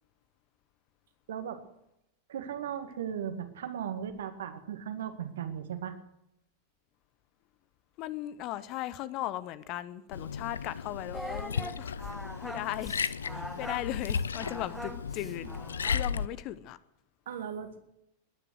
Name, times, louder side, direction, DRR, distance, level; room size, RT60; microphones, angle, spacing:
voice 1, 1.3-1.6 2.3-6.0 17.3-17.8, right 8 dB, 60° right, 1.9 m, -37 dB
voice 2, 8.0-12.1 12.4-12.9 13.3-15.5 15.8-16.8, left 14 dB, 40° left, 0.8 m, -37 dB
Liquid, 10.1-16.3, left 6 dB, 70° left, 0.5 m, -35 dB
Singing, 11.1-16.2, equal, ahead, 1.3 m, -42 dB
20.5 x 9.9 x 6.4 m
figure-of-eight pair, 90°, 0 cm